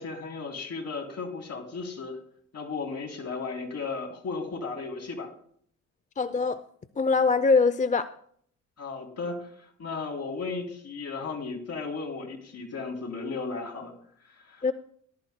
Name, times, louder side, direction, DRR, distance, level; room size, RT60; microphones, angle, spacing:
voice 1, 0.0-2.2 2.5-5.3 8.8-14.7, left 4 dB, 55° left, 2 dB, 3.2 m, -35 dB
voice 2, 6.2-6.6 7.0-8.1 14.6-14.7, left 4 dB, 25° left, 13 dB, 0.5 m, -23 dB
18.5 x 12.0 x 2.2 m, 0.62 s
cardioid pair, 90°, 30 cm